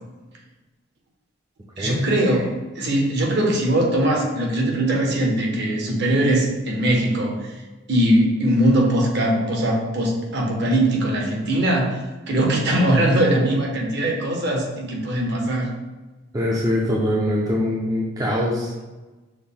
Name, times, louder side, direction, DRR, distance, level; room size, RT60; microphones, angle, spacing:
voice 1, 1.8-7.5 7.9-12.0 12.3-15.7, right 1 dB, 50° right, 0 dB, 0.8 m, -21 dB
voice 2, 16.3-18.9, left 1 dB, 15° right, -4 dB, 0.4 m, -23 dB
6.2 x 2.1 x 3.6 m, 1.2 s
head